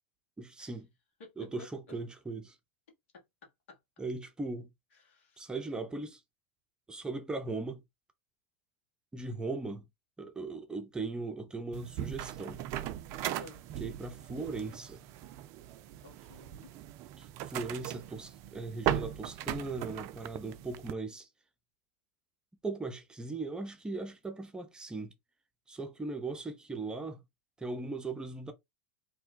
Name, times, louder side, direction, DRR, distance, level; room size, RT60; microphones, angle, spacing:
voice 1, 0.4-0.9 1.4-2.6 4.0-4.7 5.4-6.2 6.9-7.8 9.1-9.9 10.2-12.6 13.8-15.0 17.2-21.3 22.6-25.1 25.7-27.2 27.6-28.5, right 3 dB, 10° right, 0.7 m, -38 dB
voice 2, 3.1-3.8 4.9-5.4 13.4-13.6 16.0-16.7, left 3 dB, 70° left, 1.4 m, -53 dB
sound 1, 11.7-20.9, right 12 dB, 50° right, 0.4 m, -38 dB
2.7 x 2.2 x 3.8 m
hypercardioid pair, 90°, 7 cm